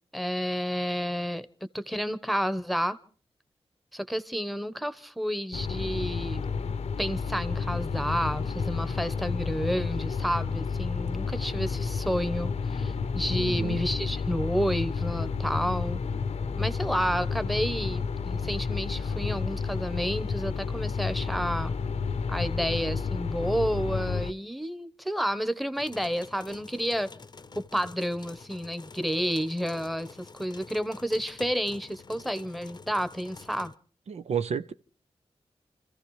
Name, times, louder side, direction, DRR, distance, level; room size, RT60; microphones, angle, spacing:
voice 1, 0.1-1.5 1.7-3.0 3.9-6.4 7.0-16.0 16.6-21.7 22.3-27.1 27.5-33.7, equal, ahead, 1.1 m, -30 dB
sound 1, 5.5-24.3, left 5 dB, 75° left, 0.7 m, -31 dB
voice 2, 13.4-13.8 34.1-34.7, right 6 dB, 85° right, 0.8 m, -31 dB
sound 2, 25.7-33.7, left 4 dB, 40° left, 0.7 m, -48 dB
29.5 x 15.0 x 3.2 m
wide cardioid pair, 95°, 11 cm